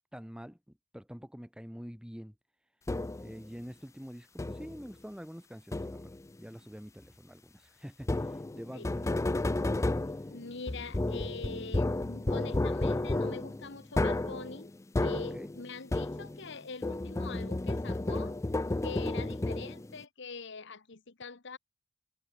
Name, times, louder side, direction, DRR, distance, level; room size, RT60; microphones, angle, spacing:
voice 1, 0.1-0.6 0.9-2.3 3.2-9.1 15.3-15.5, equal, 5° right, 1.5 m, -46 dB
sound 1, 2.9-3.4 4.4-4.9 5.7-6.3 8.0-16.5 16.8-20.0, left 2 dB, 15° left, 0.4 m, -32 dB
voice 2, 10.3-14.7 15.0-18.3 18.8-21.6, left 4 dB, 60° left, 1.3 m, -44 dB
head